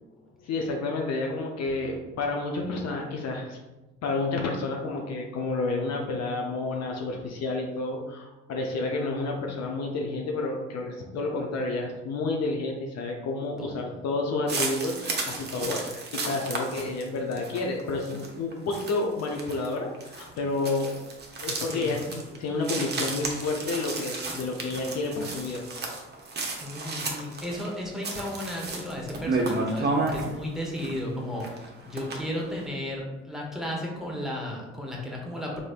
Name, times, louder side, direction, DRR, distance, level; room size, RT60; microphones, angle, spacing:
voice 1, 0.4-3.6 4.0-20.9 21.4-25.6, left 3 dB, 50° left, 1 dB, 0.6 m, -30 dB
voice 2, 13.6-14.0 16.7-17.3 21.7-21.9 26.6-35.6, left 1 dB, ahead, -2 dB, 0.9 m, -34 dB
sound 1, 14.5-31.0 31.4-32.7, right 3 dB, 30° right, 0.7 m, -32 dB
3.1 x 2.6 x 2.4 m, 1.1 s
hypercardioid pair, 55°, 34 cm